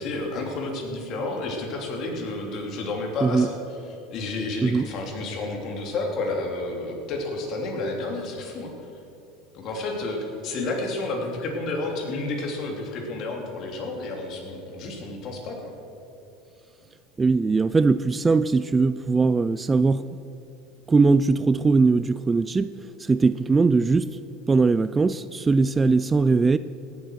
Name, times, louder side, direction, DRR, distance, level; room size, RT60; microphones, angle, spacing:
voice 1, 0.0-3.6 4.1-8.7 9.5-15.7, left 2 dB, 50° left, 3.1 m, -30 dB
voice 2, 17.2-20.0 20.9-22.7 23.0-24.1 24.5-26.6, right 4 dB, 15° right, 0.3 m, -20 dB
17.0 x 7.9 x 6.5 m
supercardioid pair, 120°, 0 cm